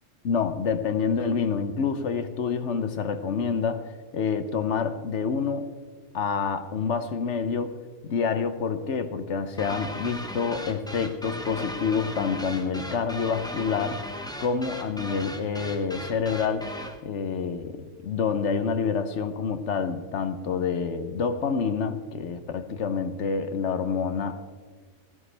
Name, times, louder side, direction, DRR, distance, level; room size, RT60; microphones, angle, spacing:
voice 1, 0.2-5.7 6.1-7.8 8.1-14.0 14.4-16.7 17.0-24.5, left 5 dB, 65° left, 11 dB, 1.1 m, -27 dB
sound 1, 9.6-17.0, left 1 dB, 5° left, 0.8 m, -37 dB
16.0 x 15.5 x 3.3 m, 1.4 s
omnidirectional pair, 1.3 m